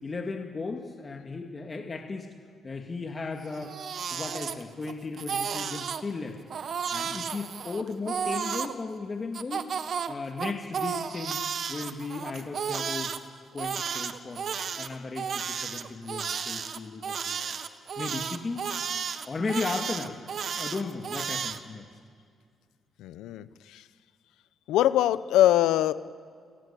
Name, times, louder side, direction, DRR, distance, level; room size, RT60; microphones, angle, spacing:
voice 1, 0.0-2.3 2.6-3.8 4.1-6.4 6.9-9.7 10.1-11.4 11.7-13.2 13.5-14.5 14.8-17.6 18.0-18.6 19.3-20.2 20.6-21.9, left 3 dB, 30° left, 3 dB, 2.2 m, -35 dB
Crying sobbing, 3.4-4.9 5.2-6.0 6.5-8.7 9.3-13.2 13.6-21.6, right 7 dB, 55° right, 1.4 m, -33 dB
voice 2, 23.0-23.8 24.7-25.9, left 13 dB, 90° left, 14 dB, 0.9 m, -23 dB
29.0 x 17.5 x 8.6 m, 2.2 s
cardioid pair, 90°, 0 cm